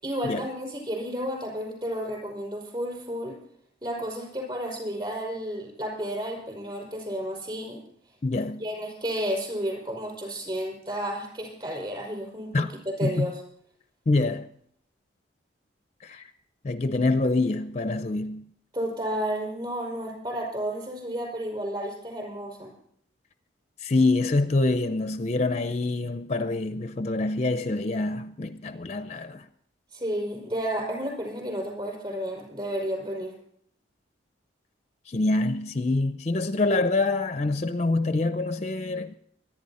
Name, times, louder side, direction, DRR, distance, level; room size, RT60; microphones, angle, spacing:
voice 1, 0.0-3.4 3.8-7.8 8.6-12.5 12.8-13.4 18.7-22.7 29.9-33.3, equal, 25° right, 5.4 m, -32 dB
voice 2, 8.2-8.6 12.5-12.7 13.0-13.3 14.1-14.5 16.0-16.2 16.6-18.5 23.8-29.4 35.1-39.1, left 2 dB, 35° left, 0.5 m, -25 dB
24.5 x 9.9 x 4.3 m
head